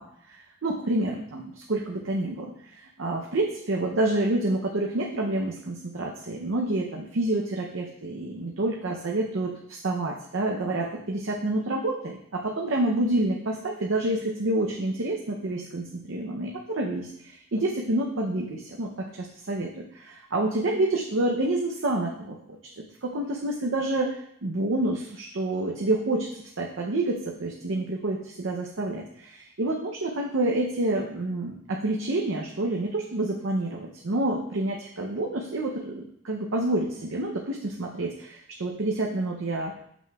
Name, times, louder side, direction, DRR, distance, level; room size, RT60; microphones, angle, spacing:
voice 1, 0.6-39.7, right 2 dB, 80° right, -1 dB, 0.7 m, -28 dB
7.5 x 5.9 x 2.3 m, 0.70 s
head